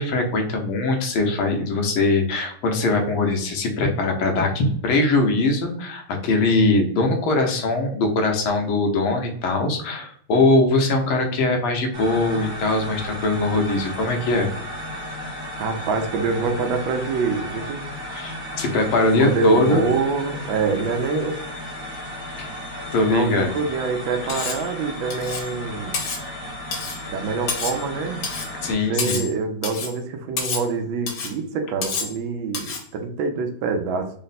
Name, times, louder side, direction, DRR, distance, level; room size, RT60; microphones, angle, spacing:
voice 1, 0.0-14.5 18.1-19.8 22.4-22.5 22.9-23.5 24.4-24.5 28.6-29.2, left 2 dB, 90° left, 3 dB, 1.7 m, -21 dB
sound 1, 11.9-28.7, equal, 40° right, 1.1 m, -34 dB
voice 2, 15.6-17.8 19.2-21.4 23.1-26.0 27.1-28.3 28.7-34.1, right 4 dB, 75° right, 5 dB, 1.4 m, -25 dB
Cutlery silverware, 24.3-24.7 25.1-25.5 25.9-26.2 26.7-27.0 27.5-27.8 28.2-28.5 29.0-29.3 29.6-30.0 30.4-30.7 31.1-31.3 31.8-32.2 32.5-32.9, left 5 dB, 70° left, 1.6 m, -29 dB
4.1 x 2.1 x 4.0 m, 0.62 s
omnidirectional pair, 2.2 m